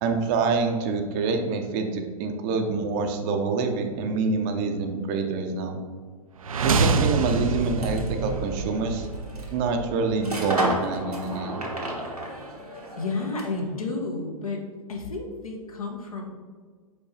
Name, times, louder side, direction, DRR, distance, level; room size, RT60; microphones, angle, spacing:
voice 1, 0.0-5.8 6.6-9.1 9.5-11.6, right 4 dB, 30° right, 5 dB, 0.7 m, -26 dB
sound 1, 6.4-10.4, right 4 dB, 70° right, 0.5 m, -27 dB
sound 2, 6.9-13.7, right 1 dB, 90° right, 1.4 m, -34 dB
voice 2, 13.0-14.6 14.9-16.2, left 3 dB, 70° left, 1 dB, 1.2 m, -31 dB
4.9 x 4.6 x 4.3 m, 1.5 s
figure-of-eight pair, 105°, 19 cm